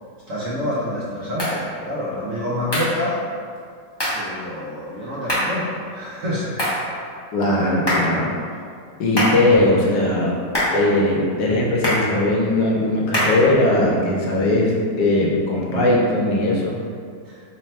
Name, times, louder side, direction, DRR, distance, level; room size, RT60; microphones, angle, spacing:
voice 1, 0.3-3.2 4.1-7.1 17.2-17.4, left 1 dB, 65° right, -8 dB, 0.9 m, -27 dB
sound 1, 1.4-1.6 2.7-3.0 4.0-4.3 5.3-5.6 6.6-6.9 7.9-8.2 9.2-9.5 10.5-10.8 11.8-12.1 13.1-13.5, equal, 35° left, 0.4 m, -22 dB
voice 2, 7.3-8.3 9.0-10.4 10.7-16.7, left 1 dB, 75° left, -2 dB, 1.1 m, -19 dB
3.2 x 2.2 x 4.1 m, 2.2 s
omnidirectional pair, 1.9 m